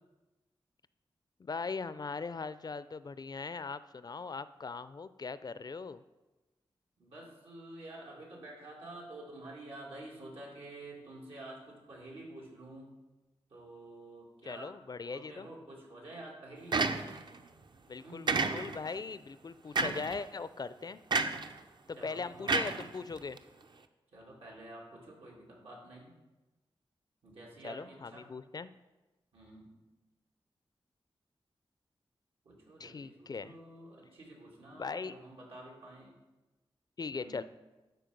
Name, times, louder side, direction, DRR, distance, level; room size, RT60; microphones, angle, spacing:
voice 1, 1.4-6.0 14.5-15.5 17.9-21.0 21.9-23.4 27.6-28.7 32.8-33.6 34.7-35.1 37.0-37.4, left 4 dB, 45° left, 14 dB, 0.4 m, -40 dB
voice 2, 7.0-12.9 13.5-14.7 15.0-16.8 18.0-18.3 22.0-22.8 24.1-26.1 27.2-28.3 29.3-29.7 32.4-36.1 37.1-37.4, right 1 dB, 90° right, -3 dB, 2.7 m, -49 dB
sound 1, 16.7-17.4 18.3-18.9 19.8-20.2 21.1-21.5 22.5-23.4, right 3 dB, 50° right, 0.6 m, -30 dB
12.0 x 4.6 x 5.2 m, 1.1 s
wide cardioid pair, 70°, 10 cm